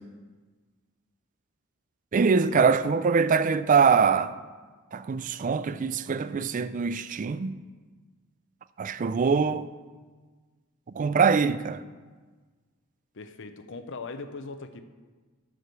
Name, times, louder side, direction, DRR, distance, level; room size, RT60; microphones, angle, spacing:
voice 1, 2.1-4.4 4.9-7.6 8.8-9.7 10.9-11.8, right 5 dB, 35° right, 0.3 m, -23 dB
voice 2, 13.1-14.8, left 3 dB, 55° left, 0.7 m, -39 dB
12.0 x 4.9 x 6.7 m
head